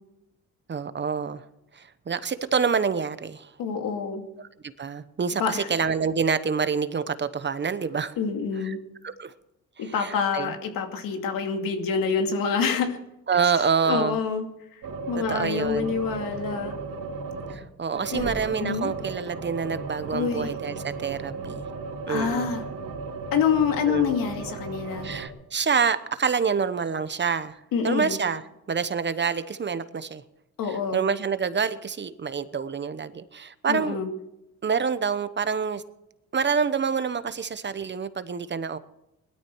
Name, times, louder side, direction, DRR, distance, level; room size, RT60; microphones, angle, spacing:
voice 1, 0.7-1.4 1.7-3.5 4.4-8.2 8.6-8.7 9.0-9.3 9.8-10.5 13.3-14.2 15.1-15.9 17.5-21.7 22.1-22.5 23.9-24.1 25.0-28.4 28.7-30.2 30.7-34.0 34.6-35.8 36.3-38.8, right 6 dB, 35° right, 12 dB, 1.0 m, -27 dB
voice 2, 3.6-4.2 5.4-5.7 8.2-8.8 9.8-13.0 13.8-14.5 14.7-16.7 18.1-18.9 20.1-20.5 22.1-22.6 23.3-25.2 27.7-28.2 30.6-31.1 33.7-34.1, left 6 dB, 90° left, 4 dB, 2.5 m, -27 dB
sound 1, 14.8-17.7 17.9-25.3, right 4 dB, 80° right, 3.3 m, -35 dB
19.5 x 13.0 x 4.7 m, 0.86 s
cardioid pair, 110°, 33 cm